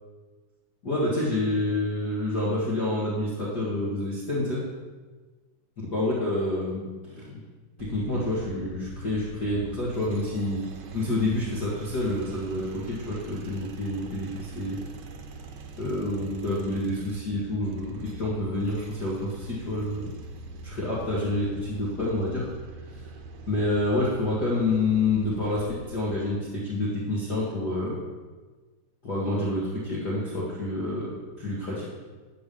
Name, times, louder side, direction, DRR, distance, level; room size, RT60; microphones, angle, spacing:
voice 1, 0.8-4.6 5.9-7.4 7.8-10.6 10.9-14.8 15.8-20.1 20.6-22.5 23.5-28.0 29.0-31.8, left 2 dB, 35° left, -7 dB, 2.0 m, -28 dB
sound 1, 7.8-26.3, right 3 dB, 70° right, 1.9 m, -43 dB
11.5 x 5.5 x 7.0 m, 1.3 s
omnidirectional pair, 3.7 m